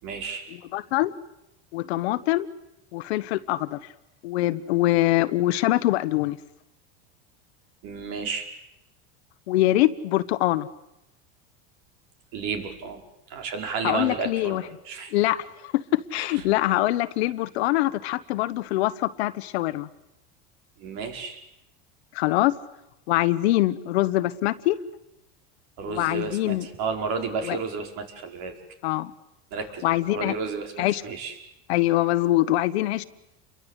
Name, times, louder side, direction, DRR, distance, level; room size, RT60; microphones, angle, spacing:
voice 1, 0.0-0.5 7.8-8.5 12.3-13.0 13.3-15.1 16.1-16.3 20.8-21.4 25.8-28.6 29.5-30.7 31.0-31.4, right 5 dB, 60° right, 5.1 m, -32 dB
voice 2, 0.7-1.1 1.7-2.5 2.9-3.8 4.2-6.4 9.5-10.7 13.8-14.6 15.1-19.9 22.1-22.5 23.1-24.8 25.9-26.7 27.5-27.6 28.8-29.1 29.8-30.3 30.8-31.0 31.7-33.0, left 16 dB, 85° left, 1.3 m, -23 dB
29.0 x 23.0 x 8.3 m
supercardioid pair, 135°, 31 cm